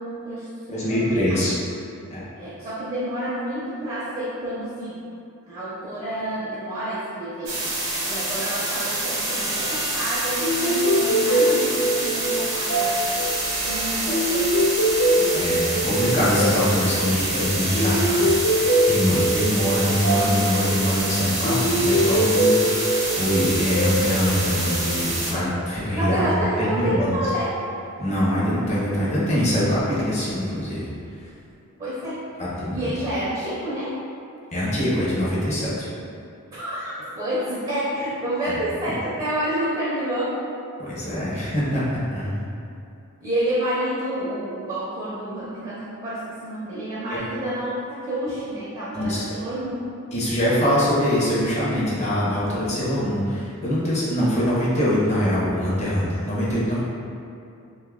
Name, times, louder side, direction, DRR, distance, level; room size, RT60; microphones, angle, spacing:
voice 1, 0.0-1.4 2.3-5.0 5.5-7.6 8.1-13.0 13.6-14.7 15.1-15.4 25.9-27.5 31.8-32.3 32.7-33.9 36.5-40.4 43.2-49.8, right 1 dB, 20° right, -11 dB, 0.6 m, -29 dB
voice 2, 0.7-1.5 2.1-2.2 15.3-27.2 28.0-30.9 32.4-32.9 34.5-35.7 38.4-38.6 40.8-42.4 47.1-47.2 48.9-49.2 50.1-56.8, equal, 30° left, -8 dB, 0.7 m, -23 dB
sound 1, 7.5-25.3, right 2 dB, 55° right, 0.8 m, -27 dB
sound 2, 10.4-25.2, equal, 80° left, 0.9 m, -23 dB
2.6 x 2.3 x 3.6 m, 2.6 s
head